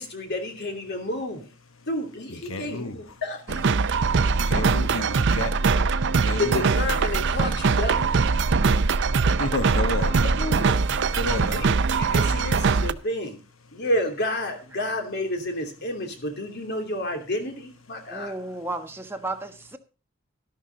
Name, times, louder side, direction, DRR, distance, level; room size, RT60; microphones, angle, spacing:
voice 1, 0.0-1.5 1.9-3.7 6.4-8.1 10.4-10.8 11.5-11.7 12.0-13.4 13.7-18.3, left 1 dB, 55° left, 2.9 m, -30 dB
voice 2, 2.3-3.0 4.5-5.5 6.2-6.7 9.4-10.3 11.1-11.6, left 2 dB, 80° left, 1.2 m, -30 dB
sound 1, 3.5-12.9, right 4 dB, 60° right, 0.6 m, -22 dB
voice 3, 18.1-19.8, right 2 dB, 10° right, 1.3 m, -35 dB
12.0 x 12.0 x 3.9 m
head